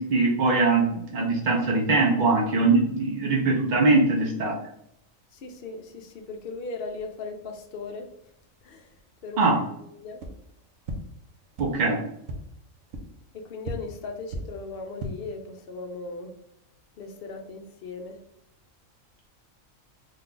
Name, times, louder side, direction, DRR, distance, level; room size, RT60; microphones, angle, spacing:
voice 1, 0.0-4.6 9.4-9.6 11.6-12.0, right 3 dB, 55° right, -2 dB, 0.5 m, -22 dB
voice 2, 5.3-8.1 8.6-8.9 9.2-9.5 9.8-10.2 13.3-16.3 17.0-18.2, left 3 dB, 60° left, 4 dB, 0.6 m, -38 dB
sound 1, 10.2-10.3 10.8-10.9 11.5-11.6 12.2-12.3 12.9-13.0 13.6-13.7 14.3-14.4 14.8-15.1, right 1 dB, 75° right, 1.0 m, -34 dB
3.2 x 2.3 x 3.7 m, 0.74 s
omnidirectional pair, 1.4 m